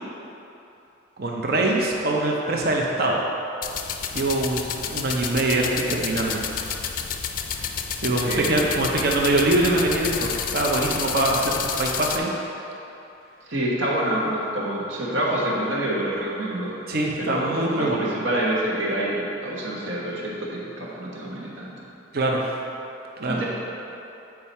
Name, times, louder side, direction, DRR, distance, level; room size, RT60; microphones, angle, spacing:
voice 1, 1.2-3.2 4.1-6.4 8.0-12.3 16.9-18.1 22.1-22.4 23.2-23.4, right 2 dB, 50° right, -1 dB, 0.7 m, -23 dB
sound 1, 3.6-12.2, left 7 dB, 45° left, 0.4 m, -30 dB
voice 2, 8.2-8.7 13.5-16.8 17.2-21.7 23.3-23.5, right 1 dB, 75° right, -4 dB, 1.3 m, -27 dB
8.7 x 4.7 x 4.3 m, 2.9 s
head